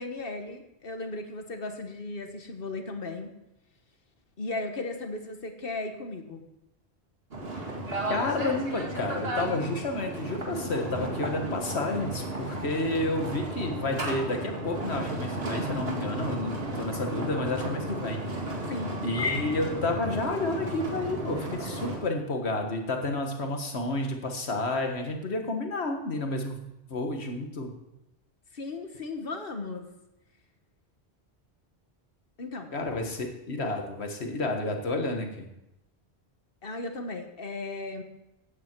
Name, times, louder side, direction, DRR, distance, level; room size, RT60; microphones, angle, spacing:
voice 1, 0.0-3.3 4.4-6.4 18.7-19.1 28.5-29.9 32.4-32.8 36.6-38.0, left 2 dB, 55° left, 6 dB, 1.5 m, -36 dB
sound 1, 7.3-22.0, right 1 dB, 65° right, 2.2 m, -34 dB
voice 2, 8.1-18.4 19.0-26.6 26.9-27.7 32.7-35.5, left 2 dB, 75° left, 4 dB, 1.8 m, -30 dB
15.0 x 9.2 x 4.6 m, 0.89 s
omnidirectional pair, 1.1 m